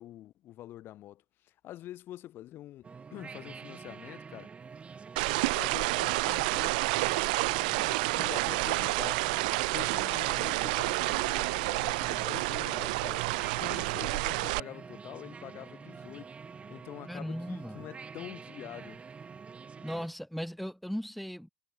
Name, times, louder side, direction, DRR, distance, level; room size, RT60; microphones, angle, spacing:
voice 1, 0.0-4.5 5.5-6.9 7.7-9.3 9.7-13.3 13.6-16.3 16.7-19.0, left 13 dB, 55° left, 7.4 m, -46 dB
sound 1, 2.8-20.1, right 5 dB, 25° right, 6.3 m, -47 dB
sound 2, 5.2-14.6, right 25 dB, 85° right, 0.4 m, -29 dB
voice 2, 17.1-17.9 19.8-21.5, equal, ahead, 4.5 m, -37 dB
supercardioid pair, 100°, 4 cm